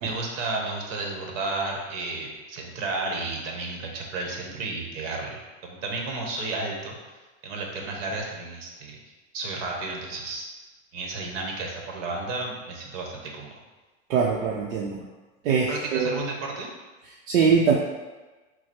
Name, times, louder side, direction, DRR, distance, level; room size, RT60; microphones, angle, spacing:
voice 1, 0.0-9.0 9.3-10.4 10.9-13.6 15.7-16.7, right 3 dB, 65° right, 0 dB, 1.1 m, -32 dB
voice 2, 14.1-15.0 15.4-16.1 17.3-17.7, right 6 dB, 80° right, -2 dB, 0.7 m, -22 dB
4.7 x 2.1 x 4.3 m, 1.2 s
supercardioid pair, 135°, 39 cm